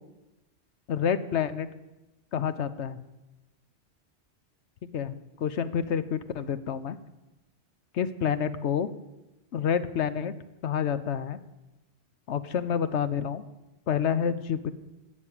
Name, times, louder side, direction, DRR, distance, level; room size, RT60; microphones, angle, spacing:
voice 1, 0.9-1.7 2.3-3.0 4.9-7.0 7.9-8.9 9.5-10.3 10.6-11.4 12.3-13.4 13.9-14.7, left 8 dB, 80° left, 13 dB, 1.1 m, -28 dB
12.5 x 7.4 x 8.6 m, 1.0 s
omnidirectional pair, 1.2 m